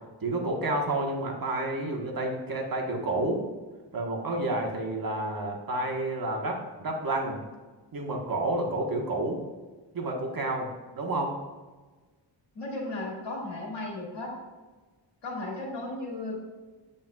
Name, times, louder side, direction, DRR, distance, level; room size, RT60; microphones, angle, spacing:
voice 1, 0.2-3.4 3.9-7.4 7.9-9.4 9.9-10.7 10.9-11.3, right 2 dB, 50° right, 0 dB, 1.4 m, -30 dB
voice 2, 12.5-14.3 15.2-16.4, left 2 dB, 70° left, -2 dB, 2.3 m, -35 dB
8.3 x 7.7 x 2.4 m, 1.3 s
wide cardioid pair, 110°, 45 cm